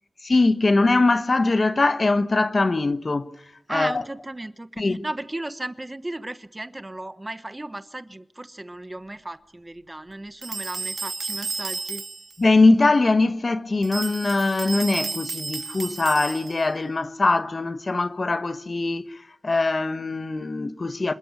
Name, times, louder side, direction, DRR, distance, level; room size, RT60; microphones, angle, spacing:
voice 1, 0.2-3.4 3.7-4.0 4.8-5.0 12.4-21.1, left 3 dB, 50° left, 1.2 m, -22 dB
voice 2, 3.7-12.0, right 1 dB, 20° right, 1.1 m, -35 dB
sound 1, 10.4-12.4 13.8-16.7, right 4 dB, 70° right, 2.0 m, -32 dB
27.0 x 13.0 x 9.7 m
wide cardioid pair, 95°, 0 cm